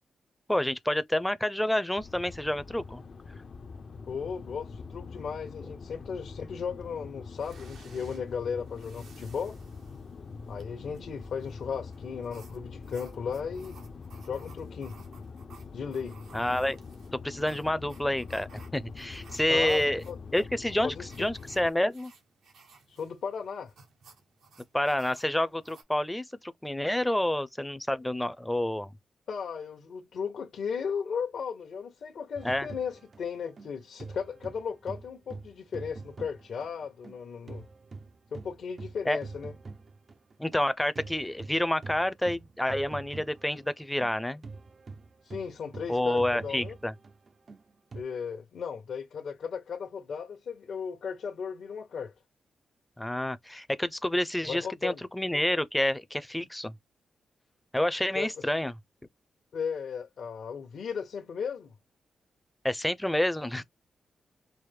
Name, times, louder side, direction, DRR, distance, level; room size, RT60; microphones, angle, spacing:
voice 1, 0.5-3.0 16.3-16.8 17.2-20.0 20.3-22.1 24.7-28.9 32.4-32.7 39.1-39.2 40.4-44.4 45.9-46.9 53.0-56.7 57.7-58.7 62.6-63.6, left 1 dB, 10° left, 0.6 m, -28 dB
sound 1, 2.0-21.7, left 4 dB, 55° left, 0.6 m, -44 dB
voice 2, 4.1-9.6 10.5-13.8 14.2-15.0 15.7-16.2 19.5-20.2 20.8-21.3 22.9-23.7 29.3-37.6 38.3-39.5 45.2-46.7 47.9-52.1 54.5-55.0 58.1-58.3 59.5-61.7, left 6 dB, 75° left, 0.9 m, -36 dB
sound 2, 7.4-25.8, right 4 dB, 85° right, 1.3 m, -57 dB
sound 3, 32.3-37.2 37.5-48.0, right 3 dB, 45° right, 0.5 m, -45 dB
4.7 x 2.0 x 3.4 m
cardioid pair, 70°, 0 cm